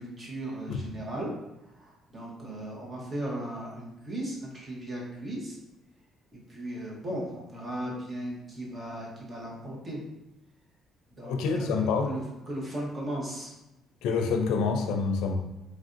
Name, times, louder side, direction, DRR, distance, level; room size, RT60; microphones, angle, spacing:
voice 1, 0.0-1.3 1.8-5.6 6.3-10.0 11.1-13.5, right 1 dB, 30° right, -3 dB, 1.0 m, -37 dB
voice 2, 11.2-12.1 14.0-15.3, left 5 dB, 90° left, 4 dB, 0.4 m, -27 dB
3.2 x 2.5 x 2.5 m, 0.94 s
cardioid pair, 100°, 0 cm